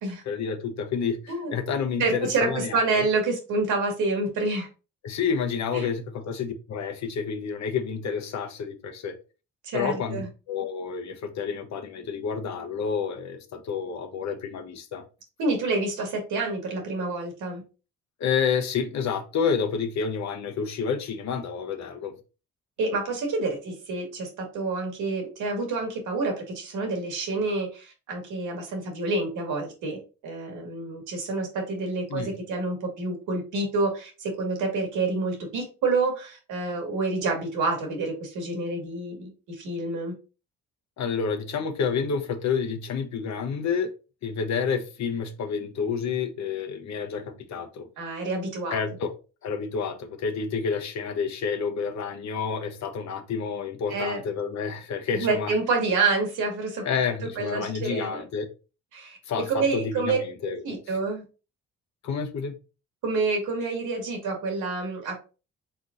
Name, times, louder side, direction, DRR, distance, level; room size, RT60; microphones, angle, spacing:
voice 1, 0.3-3.1 5.0-9.2 9.7-10.2 10.5-15.0 18.2-22.1 32.1-32.3 41.0-43.9 44.2-47.9 48.7-49.1 49.4-55.5 56.8-58.5 59.3-60.6 62.0-62.5, left 6 dB, 65° left, 0.9 m, -29 dB
voice 2, 2.0-4.7 5.7-5.9 9.6-10.3 15.4-17.6 22.8-30.0 30.2-40.1 48.0-48.8 53.9-54.2 55.1-56.8 57.4-58.2 58.9-60.2 60.6-61.2 63.0-65.2, right 3 dB, 85° right, 1.8 m, -28 dB
4.4 x 4.0 x 2.5 m
cardioid pair, 90°, 30 cm